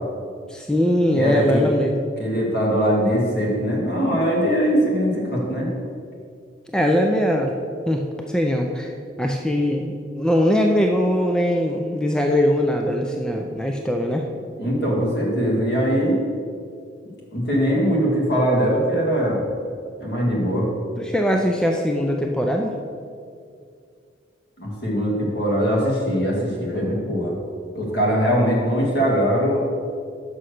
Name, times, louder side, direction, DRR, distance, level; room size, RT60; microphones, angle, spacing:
voice 1, 0.5-2.0 6.7-7.5 7.9-8.9 9.2-14.3 21.0-22.7, equal, 5° left, 2 dB, 0.4 m, -21 dB
voice 2, 1.1-1.7 2.2-5.7 14.6-16.2 17.3-19.4 20.0-20.7 24.6-27.3 27.7-29.6, equal, 60° left, -3 dB, 2.0 m, -21 dB
6.3 x 5.6 x 6.4 m, 2.3 s
head